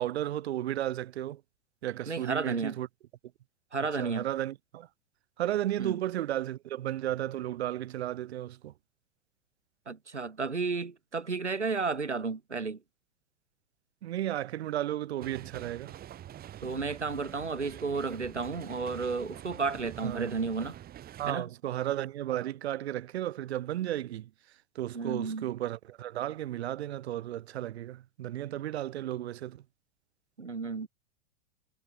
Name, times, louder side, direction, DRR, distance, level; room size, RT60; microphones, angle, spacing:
voice 1, 0.0-1.4 1.8-2.9 4.0-4.9 5.4-8.7 14.0-15.9 20.0-20.3 21.2-24.3 24.7-29.6, right 13 dB, 70° right, 0.5 m, -34 dB
voice 2, 2.1-2.7 3.7-4.3 5.8-6.0 9.9-12.8 16.6-20.8 21.3-21.5 24.9-25.5 30.4-30.9, right 4 dB, 90° right, 1.2 m, -32 dB
sound 1, 15.2-21.3, right 12 dB, 25° right, 2.0 m, -46 dB
figure-of-eight pair, 95°, 34 cm